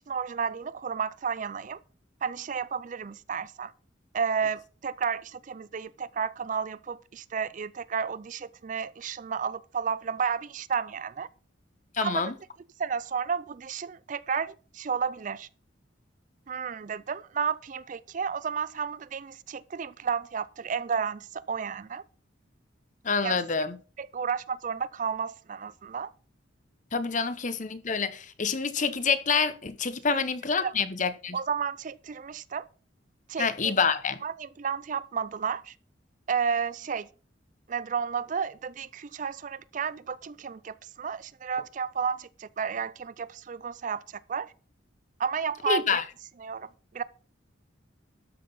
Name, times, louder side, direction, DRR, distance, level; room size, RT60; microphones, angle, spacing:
voice 1, 0.1-1.8 2.2-3.7 4.1-11.3 12.0-12.2 12.8-15.5 16.5-22.0 23.2-23.4 24.0-26.1 30.1-30.2 30.6-30.7 31.3-32.7 33.3-33.8 34.2-35.7 36.3-37.1 37.7-44.0 44.3-44.5 45.2-46.0 46.4-47.0, right 6 dB, 40° right, 0.4 m, -32 dB
voice 2, 11.9-12.3 23.0-23.8 26.9-31.4 33.4-34.2 45.7-46.0, left 5 dB, 40° left, 0.9 m, -27 dB
12.5 x 5.8 x 5.4 m
head